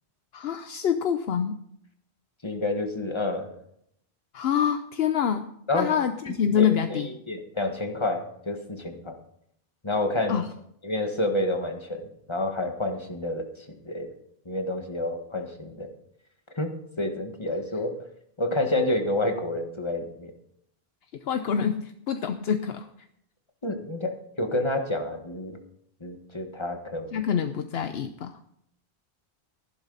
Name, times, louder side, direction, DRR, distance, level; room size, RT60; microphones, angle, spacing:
voice 1, 0.3-1.6 4.3-5.5 5.7-7.1 10.3-10.5 21.3-22.9 27.1-28.4, left 8 dB, 75° left, 8 dB, 0.9 m, -26 dB
voice 2, 2.4-3.5 5.7-5.9 6.5-9.1 9.8-10.4 10.8-12.0 12.3-13.5 13.8-14.1 14.4-15.9 16.6-16.7 17.0-17.9 18.4-20.3 23.6-25.6 26.0-27.1, left 1 dB, 25° left, 4 dB, 1.7 m, -29 dB
14.5 x 11.5 x 4.0 m, 0.72 s
omnidirectional pair, 1.1 m